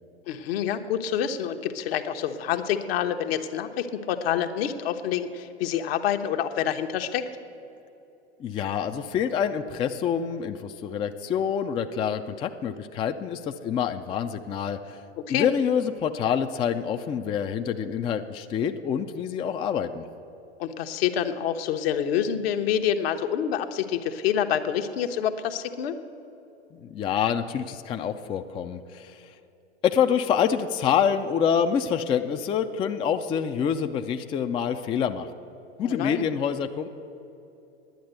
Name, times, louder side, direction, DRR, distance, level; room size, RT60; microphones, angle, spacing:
voice 1, 0.3-7.3 15.3-15.5 20.6-26.0 35.8-36.2, left 9 dB, 65° left, 7 dB, 0.9 m, -27 dB
voice 2, 8.4-15.0 15.3-20.1 26.7-29.3 29.8-35.3 35.8-36.9, left 8 dB, 15° left, 7 dB, 0.3 m, -26 dB
10.5 x 8.7 x 7.9 m, 2.8 s
hypercardioid pair, 105°, 33 cm